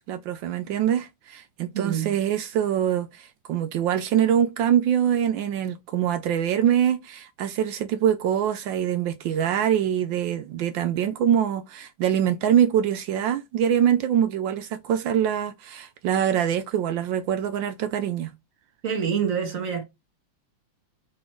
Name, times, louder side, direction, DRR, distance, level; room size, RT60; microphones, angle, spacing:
voice 1, 0.1-18.3, right 9 dB, 75° right, 1.2 m, -24 dB
voice 2, 1.7-2.1 18.8-19.8, right 7 dB, 40° right, 1.8 m, -26 dB
5.0 x 4.2 x 4.5 m
omnidirectional pair, 2.4 m